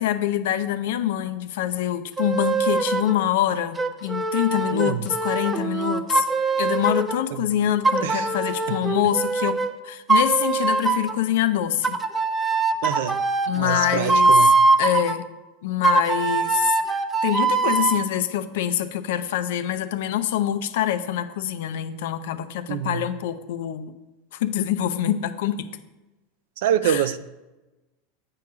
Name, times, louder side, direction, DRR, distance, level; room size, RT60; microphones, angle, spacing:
voice 1, 0.0-6.3 6.6-12.0 13.5-14.5 14.8-15.2 15.6-16.8 17.2-23.9 24.3-25.7 26.8-27.1, left 11 dB, 75° left, 0.5 m, -25 dB
sound 1, 2.2-3.2 3.7-7.2 7.8-9.7 10.1-11.2 11.8-15.1 15.8-18.0, right 3 dB, 15° right, 0.5 m, -22 dB
voice 2, 4.7-5.1 7.4-7.5 8.0-8.3 8.7-8.8 12.8-13.2 13.6-14.5 22.7-23.0 26.6-27.2, right 10 dB, 75° right, 0.4 m, -25 dB
8.5 x 4.7 x 4.7 m
supercardioid pair, 135°, 0 cm